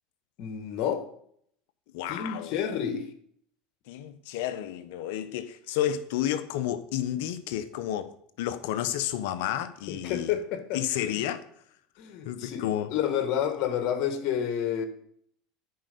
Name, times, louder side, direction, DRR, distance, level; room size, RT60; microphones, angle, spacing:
voice 1, 0.4-1.1 2.1-3.1 9.9-10.8 12.0-12.6 12.9-14.9, left 9 dB, 60° left, 1.7 m, -29 dB
voice 2, 1.9-2.6 3.9-10.3 10.7-11.4 12.2-13.0, left 11 dB, 75° left, 0.9 m, -31 dB
10.5 x 4.8 x 6.7 m
supercardioid pair, 105°, 0 cm